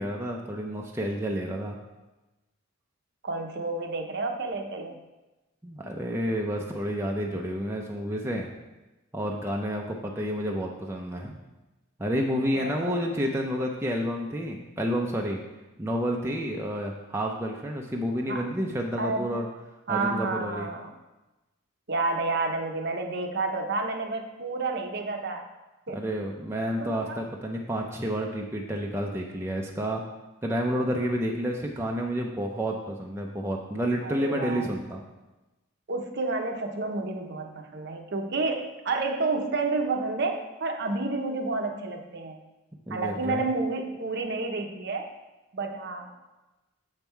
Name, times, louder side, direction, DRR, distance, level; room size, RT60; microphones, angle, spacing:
voice 1, 0.0-1.8 5.6-8.5 9.1-11.4 12.0-15.4 15.8-19.5 19.9-20.7 25.9-30.0 30.4-35.0 42.9-43.4, equal, 10° right, 0 dB, 0.5 m, -30 dB
voice 2, 3.2-5.0 12.5-13.0 18.3-18.5 19.0-19.3 19.9-20.9 21.9-25.4 25.9-26.0 26.8-27.2 34.0-34.7 35.9-42.4 42.9-45.1 45.5-46.1, right 3 dB, 50° right, 4 dB, 0.8 m, -30 dB
7.2 x 5.4 x 4.5 m, 1.1 s
head